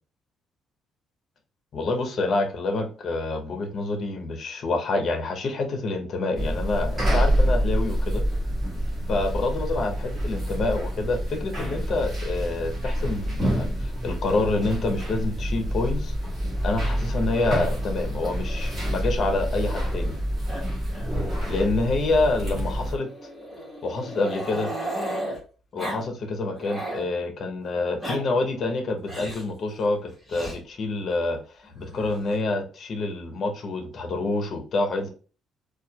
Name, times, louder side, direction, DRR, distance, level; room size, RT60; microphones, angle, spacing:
voice 1, 1.7-8.2 9.1-16.2 16.6-20.1 21.5-23.1 23.8-24.7 25.7-35.1, left 2 dB, 45° left, 5 dB, 0.7 m, -27 dB
sound 1, 6.3-22.9, equal, 30° right, 1.7 m, -27 dB
Growling, 18.3-20.2 20.5-20.6 20.9-21.1 21.4-21.5 22.5-25.4 25.8-26.0 26.4-27.1 27.8-28.2 29.1-29.5 30.3-30.6 31.7-32.4, right 1 dB, ahead, 1.6 m, -35 dB
4.3 x 2.3 x 2.2 m, 0.37 s
cardioid pair, 145°, 0 cm